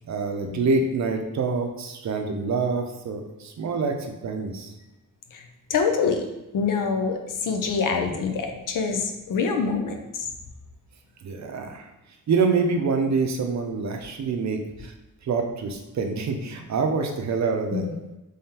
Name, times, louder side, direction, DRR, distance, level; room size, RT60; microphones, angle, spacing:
voice 1, 0.1-4.0 4.2-4.7 11.2-11.9 12.3-14.9 15.2-17.8, right 4 dB, 55° right, 4 dB, 0.6 m, -26 dB
voice 2, 5.7-6.3 6.5-10.3 17.7-18.0, left 5 dB, 70° left, 4 dB, 0.6 m, -25 dB
3.6 x 3.5 x 2.8 m, 0.97 s
wide cardioid pair, 135°, 33 cm